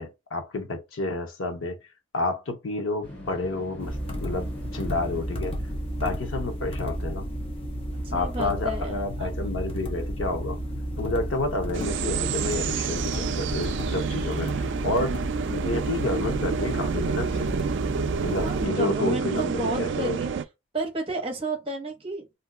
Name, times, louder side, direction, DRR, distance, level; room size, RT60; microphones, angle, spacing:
voice 1, 0.0-1.8 2.1-4.5 4.7-5.6 6.0-7.3 8.1-10.6 11.0-15.2 15.5-17.5 18.2-20.2, left 2 dB, 85° left, 0.7 m, -30 dB
sound 1, 3.0-7.2, left 1 dB, 55° left, 1.3 m, -44 dB
sound 2, 3.8-18.7, equal, 30° left, 0.7 m, -32 dB
voice 2, 8.0-9.3 18.4-20.3 20.7-22.2, right 2 dB, 30° right, 0.9 m, -32 dB
sound 3, 11.7-20.5, right 6 dB, 65° right, 0.3 m, -29 dB
2.6 x 2.2 x 3.7 m
head